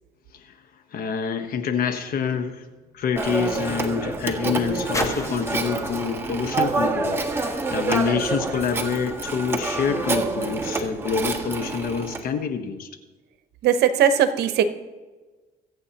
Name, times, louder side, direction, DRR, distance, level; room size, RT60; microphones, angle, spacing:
voice 1, 0.9-2.6 2.9-12.9, left 6 dB, 60° left, 8 dB, 1.2 m, -27 dB
sound 1, 2.1-7.9 8.7-8.8, left 1 dB, 20° left, 1.3 m, -37 dB
Telephone, 3.2-12.2, right 3 dB, 15° right, 1.5 m, -27 dB
voice 2, 13.6-14.6, right 9 dB, 75° right, 9 dB, 1.0 m, -19 dB
24.0 x 8.5 x 2.9 m, 1.3 s
cardioid pair, 110°, 17 cm